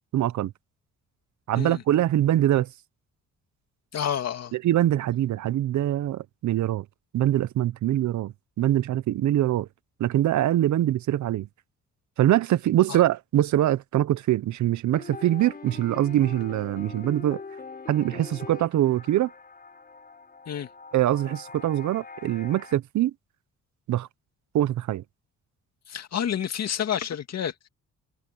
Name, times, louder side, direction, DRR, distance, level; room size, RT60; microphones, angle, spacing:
voice 1, 0.1-0.5 1.5-2.7 4.5-6.9 7.1-9.7 10.0-11.5 12.2-17.4 17.9-19.3 20.9-23.1 23.9-24.1 24.5-25.0, right 13 dB, 70° right, 0.9 m, -23 dB
voice 2, 3.9-4.5 12.9-13.0 20.5-20.7 25.9-27.7, left 9 dB, 60° left, 2.4 m, -29 dB
sound 1, 14.9-22.8, left 4 dB, 30° left, 4.8 m, -43 dB
cardioid pair, 90°, 30 cm